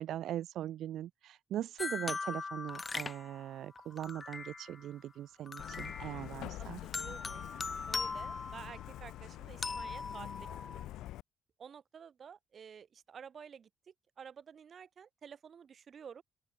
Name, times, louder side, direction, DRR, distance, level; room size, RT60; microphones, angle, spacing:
voice 1, 0.0-6.8, right 12 dB, 75° right, 1.6 m, -40 dB
sound 1, 1.8-4.9 5.5-6.5 6.9-9.1 9.6-10.9, left 4 dB, 30° left, 3.2 m, -40 dB
Truck, 5.6-11.2, left 14 dB, 85° left, 1.1 m, -46 dB
voice 2, 6.6-7.5 7.9-10.5 10.7-10.8 11.6-16.2, right 7 dB, 50° right, 5.8 m, -51 dB
open air
cardioid pair, 90°, 0 cm